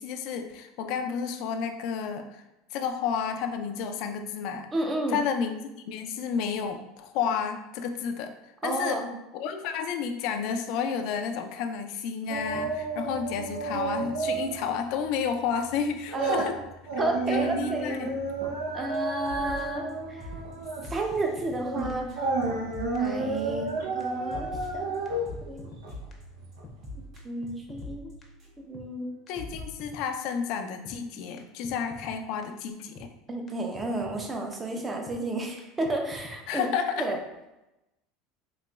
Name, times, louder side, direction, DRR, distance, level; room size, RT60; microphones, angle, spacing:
voice 1, 0.0-2.4 2.7-4.7 5.1-9.0 9.3-16.6 17.3-18.1 29.3-33.1 36.5-37.1, left 6 dB, 65° left, 6 dB, 0.4 m, -31 dB
voice 2, 4.7-5.2 8.6-9.2 16.1-16.5 17.0-17.9 18.7-20.2 20.9-22.2 23.0-25.0 25.5-25.7 26.9-28.1 28.6-29.1 33.3-36.7 37.0-37.2, right 2 dB, 20° right, 2 dB, 0.6 m, -32 dB
sound 1, 12.3-14.7 15.0-15.2 15.7-26.6 27.0-27.1, right 3 dB, 80° right, 0.6 m, -31 dB
sound 2, 18.9-19.0 19.2-19.9 20.2-23.7 24.0-28.8 29.1-29.2 29.3-29.6, left 1 dB, 45° right, 1.3 m, -44 dB
sound 3, 20.3-20.4 20.8-20.9 21.1-21.6 21.9-22.0 22.4-22.5 22.9-23.0 23.2-23.7 24.0-24.1 24.5-24.6 25.0-25.1 25.3-25.8 26.1-26.2 26.6-26.7 27.2-27.9 28.2-28.3 28.7-28.9 29.3-29.4 29.5-30.0 30.3-30.4 30.8-31.0 31.4-31.5 31.6-32.1 32.4-32.5 32.9-33.1 33.5-33.6 33.7-34.2 34.5-34.6 35.1-35.2 35.6-35.7 35.8-36.4 36.6-36.7, left 2 dB, 25° left, 0.7 m, -45 dB
4.0 x 2.9 x 2.3 m, 0.95 s
supercardioid pair, 115°, 0 cm